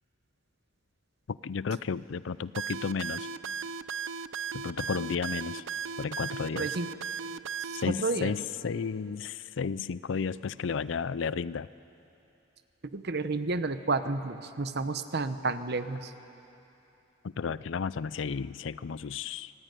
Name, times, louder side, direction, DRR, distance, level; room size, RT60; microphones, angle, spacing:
voice 1, 1.3-3.3 4.5-5.6 6.0-6.7 7.8-11.7 17.4-19.5, left 5 dB, 70° left, 18 dB, 0.5 m, -33 dB
sound 1, 2.5-7.8, right 6 dB, 85° right, 0.6 m, -36 dB
voice 2, 6.5-6.9 7.6-8.4 12.8-16.1, right 3 dB, 60° right, 11 dB, 1.0 m, -31 dB
25.0 x 18.5 x 9.2 m, 2.9 s
head